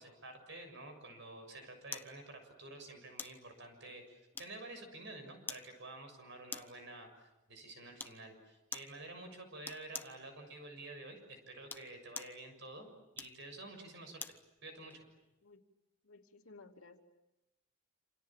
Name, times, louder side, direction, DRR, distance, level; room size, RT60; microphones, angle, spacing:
voice 1, 0.0-12.9 13.1-14.4 14.6-15.0, right 2 dB, 55° right, 6 dB, 6.9 m, -50 dB
sound 1, 1.9-2.2 3.2-3.4 4.4-4.8 5.5-5.7 6.5-6.8 8.0-8.2 8.7-9.0 9.6-10.2 11.5-12.4 13.1-14.4 14.9-15.0, left 3 dB, 10° left, 0.9 m, -45 dB
voice 2, 16.0-17.0, left 3 dB, 80° left, 4 dB, 2.8 m, -57 dB
28.0 x 28.0 x 7.5 m, 0.96 s
head